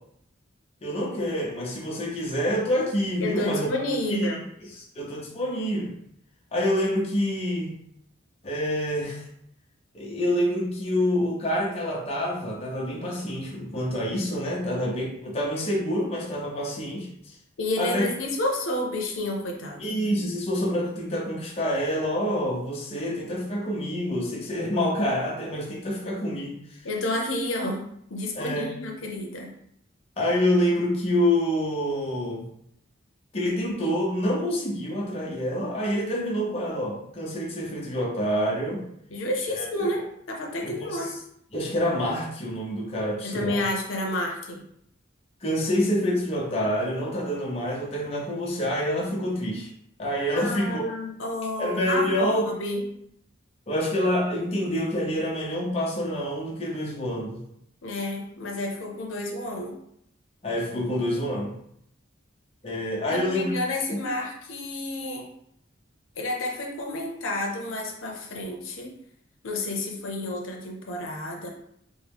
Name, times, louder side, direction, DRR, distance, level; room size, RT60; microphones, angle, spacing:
voice 1, 0.8-3.7 4.1-4.4 4.8-5.9 6.5-7.7 8.4-9.2 9.9-17.1 17.8-18.0 19.8-26.8 28.3-28.7 30.2-32.5 33.3-38.8 39.6-39.9 40.6-41.0 41.5-43.6 45.4-49.7 50.0-50.9 51.6-52.5 53.7-57.4 60.4-61.5 62.6-63.5, equal, 30° left, -3 dB, 0.7 m, -27 dB
voice 2, 3.2-4.5 17.6-20.0 26.8-29.6 39.1-41.1 43.2-44.6 50.3-52.8 57.8-59.8 63.1-65.3 66.2-68.9 69.4-71.5, left 1 dB, 85° left, 1 dB, 0.6 m, -30 dB
3.6 x 2.1 x 3.4 m, 0.72 s
head